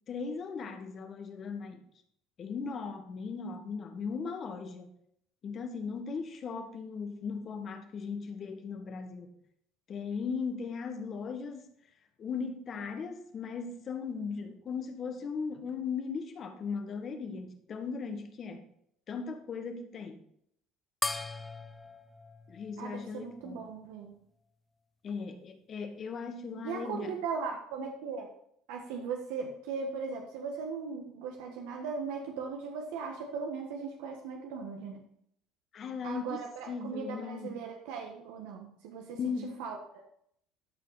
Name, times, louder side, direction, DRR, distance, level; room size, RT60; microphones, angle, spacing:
voice 1, 0.1-1.9 2.4-4.9 5.4-9.4 9.9-11.7 12.2-18.7 19.1-20.2 22.5-23.6 25.0-27.1 35.7-37.5 39.1-39.6, left 5 dB, 40° left, 7 dB, 1.4 m, -38 dB
sound 1, 21.0-23.8, left 2 dB, 10° left, 0.6 m, -39 dB
voice 2, 22.8-24.2 26.6-28.3 28.7-35.0 36.0-39.2 39.6-39.8, right 5 dB, 85° right, 2 dB, 1.4 m, -38 dB
12.5 x 5.7 x 4.1 m, 0.70 s
cardioid pair, 115°, 0 cm